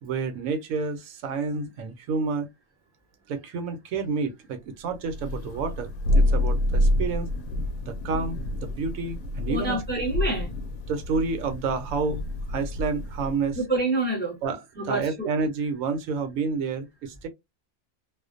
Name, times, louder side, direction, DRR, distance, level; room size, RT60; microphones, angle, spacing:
voice 1, 0.0-2.5 3.3-7.3 7.8-9.8 10.9-12.2 12.5-13.6 14.4-17.3, right 4 dB, 80° right, 1.0 m, -29 dB
Thunder, 5.0-13.5, left 1 dB, 85° left, 1.0 m, -27 dB
voice 2, 9.5-10.5 13.6-14.4 14.8-15.3, right 2 dB, 10° left, 0.6 m, -27 dB
2.4 x 2.2 x 2.4 m
omnidirectional pair, 1.4 m